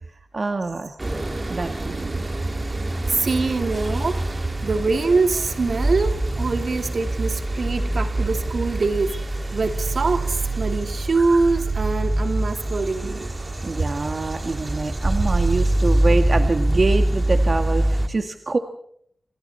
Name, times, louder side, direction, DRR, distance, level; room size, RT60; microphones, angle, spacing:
voice 1, 0.3-1.0 1.5-2.3 13.6-18.6, right 3 dB, 45° right, 1.7 m, -25 dB
sound 1, 1.0-18.1, right 1 dB, 25° right, 2.5 m, -24 dB
voice 2, 3.1-4.3 4.6-13.3, right 3 dB, 60° right, 2.8 m, -24 dB
29.0 x 27.5 x 4.4 m
wide cardioid pair, 110°, 0 cm